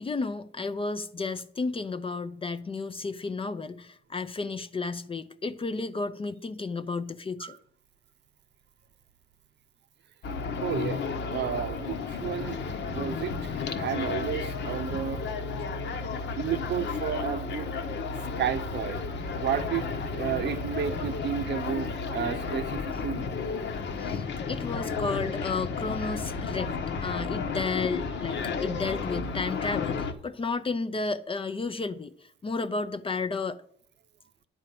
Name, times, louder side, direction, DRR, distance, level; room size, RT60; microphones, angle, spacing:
voice 1, 0.0-7.6 24.0-32.1 32.4-33.6, left 3 dB, 25° left, 0.6 m, -32 dB
sound 1, 10.2-30.1, left 4 dB, 65° left, 1.1 m, -32 dB
voice 2, 10.6-12.6 12.9-13.5 13.8-15.2 16.4-17.7 18.4-19.0 19.4-23.2, right 9 dB, 60° right, 0.7 m, -32 dB
10.5 x 4.5 x 7.7 m
cardioid pair, 90°, 20 cm